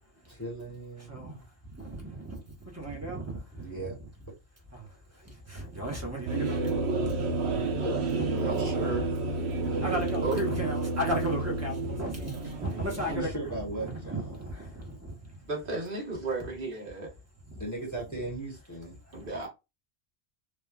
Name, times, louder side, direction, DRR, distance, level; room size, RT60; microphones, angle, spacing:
voice 1, 0.3-1.5 3.6-3.9 7.8-9.8 13.1-14.4 17.5-19.0, right 1 dB, 15° left, 1.0 m, -39 dB
voice 2, 1.1-1.4 1.6-3.7 4.7-15.4 17.5-17.6 19.1-19.3, right 1 dB, 15° right, 0.7 m, -36 dB
sound 1, 6.3-13.2, right 3 dB, 75° right, 0.9 m, -30 dB
voice 3, 8.4-9.2 9.7-9.8 10.2-10.4 13.1-13.3 15.4-17.1 19.1-19.5, right 2 dB, 55° right, 1.2 m, -35 dB
3.2 x 2.2 x 2.3 m
omnidirectional pair, 1.2 m